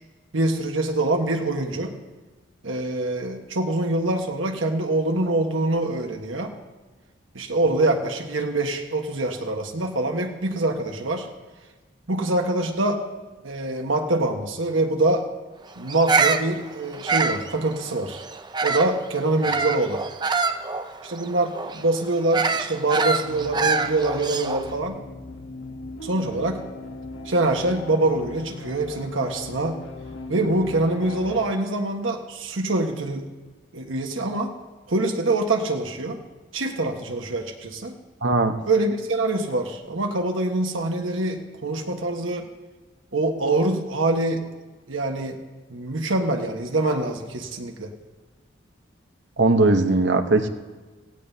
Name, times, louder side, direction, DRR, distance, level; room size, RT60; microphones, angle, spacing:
voice 1, 0.3-1.9 2.6-6.5 7.3-11.3 12.1-13.0 13.4-15.3 15.8-18.2 18.6-20.0 21.0-25.0 26.0-26.6 27.2-29.8 30.3-33.3 33.7-34.5 34.9-36.2 36.5-38.0 38.7-42.5 43.1-44.4 44.9-45.4 45.7-47.9, right 2 dB, 85° right, 3 dB, 1.4 m, -24 dB
Bird vocalization bird call bird song, 15.9-19.0 19.4-24.7, right 4 dB, 20° right, 0.6 m, -25 dB
sound 1, 23.2-31.5, left 3 dB, 90° left, 1.2 m, -39 dB
voice 2, 38.2-38.6 49.4-50.5, right 2 dB, 65° right, 7 dB, 1.0 m, -19 dB
18.0 x 16.0 x 2.8 m, 1.3 s
head